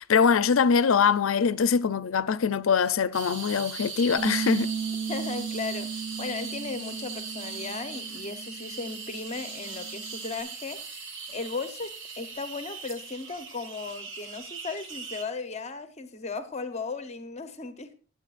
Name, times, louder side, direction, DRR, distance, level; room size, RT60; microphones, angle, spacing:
voice 1, 0.0-4.7, left 6 dB, 75° left, 0.5 m, -23 dB
sound 1, 3.1-15.2, right 5 dB, 65° right, 1.7 m, -39 dB
Bass guitar, 4.2-10.4, right 7 dB, 30° right, 2.5 m, -36 dB
voice 2, 5.1-11.9 12.2-17.9, left 4 dB, 35° left, 0.9 m, -36 dB
20.0 x 7.7 x 2.5 m
head